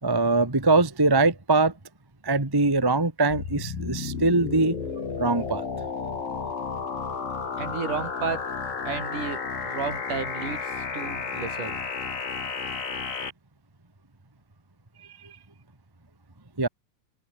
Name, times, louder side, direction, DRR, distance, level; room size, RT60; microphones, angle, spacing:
voice 1, 0.0-1.7 2.2-4.8 5.2-5.6 15.2-15.4 16.6-16.7, right 3 dB, 15° right, 0.9 m, -22 dB
sound 1, 3.3-13.3, left 5 dB, 80° left, 6.9 m, -32 dB
voice 2, 7.6-8.5 8.9-11.8, right 5 dB, 60° right, 5.5 m, -33 dB
omnidirectional pair, 4.1 m